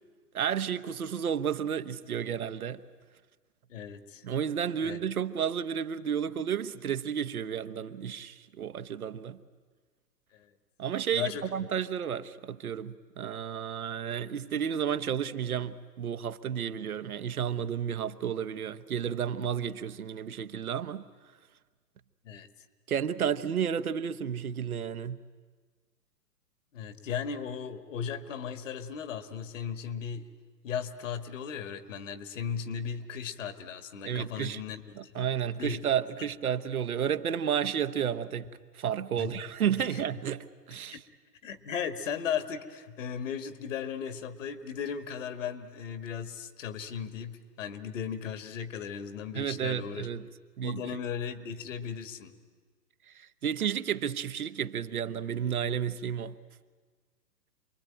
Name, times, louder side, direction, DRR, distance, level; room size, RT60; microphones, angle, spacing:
voice 1, 0.3-2.8 4.2-9.4 10.8-21.0 22.9-25.2 34.0-34.6 34.9-38.5 38.7-41.0 49.3-50.3 50.6-50.8 53.1-56.3, right 8 dB, 65° right, 1.2 m, -32 dB
voice 2, 3.7-4.2 4.8-5.0 10.3-10.5 11.1-11.5 22.2-22.5 26.7-30.3 30.6-35.3 35.6-35.8 39.2-39.3 39.9-40.0 40.9-41.0 41.4-50.1 50.6-52.3, left 7 dB, 50° left, 2.0 m, -36 dB
27.5 x 22.5 x 9.1 m
figure-of-eight pair, 120°, 48 cm